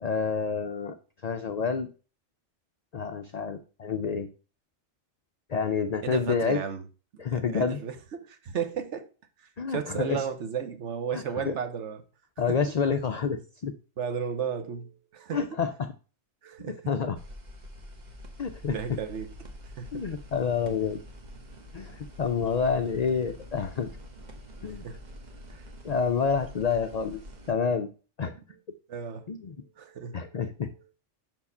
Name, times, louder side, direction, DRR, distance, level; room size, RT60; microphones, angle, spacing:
voice 1, 0.0-0.9 1.2-1.9 2.9-4.3 5.5-6.6 7.2-7.8 9.6-10.2 11.1-11.5 12.4-13.7 15.3-15.9 16.7-17.2 18.4-18.8 19.9-21.0 21.7-23.9 24.6-24.8 25.8-27.2 27.5-27.9 28.2-28.4 29.3-29.5 30.1-30.7, left 6 dB, 70° left, 0.3 m, -28 dB
voice 2, 6.0-6.9 7.1-9.1 9.7-12.0 12.5-12.6 14.0-15.6 16.4-16.9 18.7-19.3 19.8-20.1 22.3-22.5 24.8-25.0 25.5-25.6 28.9-29.3 29.8-30.3, right 7 dB, 65° right, 1.1 m, -34 dB
sound 1, 17.1-27.5, equal, 35° right, 1.0 m, -46 dB
5.8 x 4.7 x 5.4 m
omnidirectional pair, 1.4 m